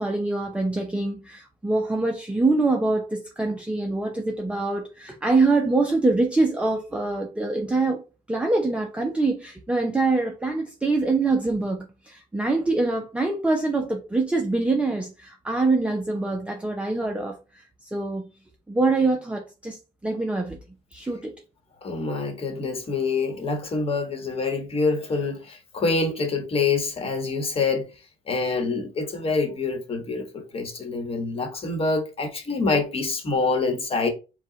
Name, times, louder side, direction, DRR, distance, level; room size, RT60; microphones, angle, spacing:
voice 1, 0.0-8.0 8.3-18.3 18.7-20.6 20.9-21.4, right 3 dB, 5° right, 0.6 m, -24 dB
voice 2, 21.8-27.9 28.3-34.1, left 4 dB, 35° left, 1.2 m, -26 dB
4.7 x 2.3 x 3.8 m
cardioid pair, 110°, 17 cm